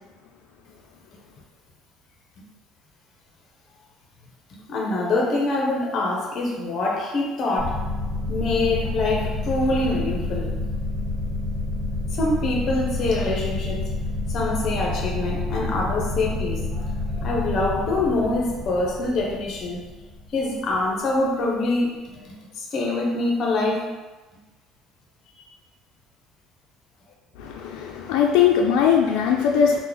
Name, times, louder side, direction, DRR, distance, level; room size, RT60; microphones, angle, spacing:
voice 1, 4.7-7.8 8.3-10.6 12.1-13.8 14.3-19.8 20.3-23.9, left 2 dB, 40° left, -1 dB, 0.6 m, -25 dB
sound 1, 7.6-20.8, left 2 dB, 40° right, 1.3 m, -29 dB
voice 2, 27.4-29.8, left 8 dB, 90° left, 1 dB, 0.3 m, -20 dB
3.0 x 2.1 x 3.8 m, 1.2 s
cardioid pair, 160°, 0 cm